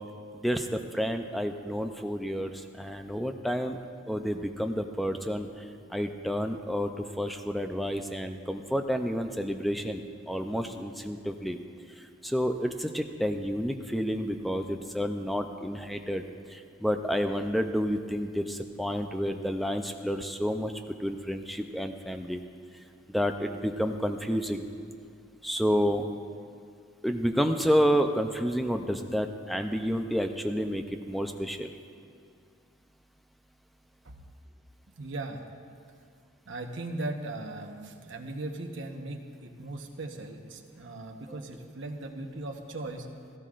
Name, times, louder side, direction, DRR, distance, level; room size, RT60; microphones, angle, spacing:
voice 1, 0.3-3.8 4.1-11.6 12.2-16.2 16.5-20.7 21.0-22.4 23.1-24.7 25.4-26.0 27.0-31.7, equal, ahead, 6 dB, 0.5 m, -30 dB
voice 2, 34.9-35.4 36.4-43.1, right 2 dB, 70° right, 2 dB, 1.0 m, -38 dB
16.5 x 15.5 x 2.5 m, 2.3 s
head